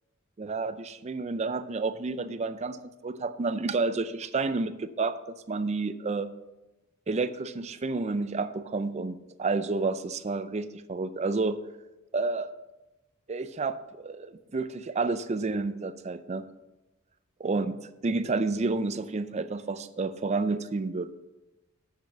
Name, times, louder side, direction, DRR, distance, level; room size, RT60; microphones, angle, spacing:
voice 1, 0.4-5.2 5.5-6.3 7.1-11.6 12.1-12.5 13.3-16.5 17.4-21.1, right 3 dB, 35° right, 12 dB, 0.4 m, -30 dB
8.0 x 6.4 x 6.0 m, 1.0 s
head